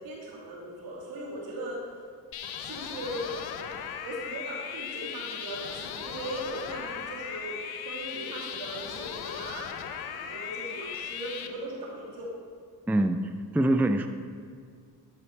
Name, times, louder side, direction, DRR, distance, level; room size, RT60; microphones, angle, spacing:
voice 1, 0.0-1.8 2.6-3.4 4.0-7.6 7.8-9.7 10.1-12.3, right 1 dB, 70° right, -3 dB, 2.6 m, -38 dB
sound 1, 2.3-11.5, left 8 dB, 85° left, 0.7 m, -37 dB
voice 2, 12.9-13.2 13.5-14.1, right 1 dB, 5° right, 7 dB, 0.4 m, -23 dB
13.0 x 5.1 x 4.6 m, 2.2 s
cardioid pair, 65°, 37 cm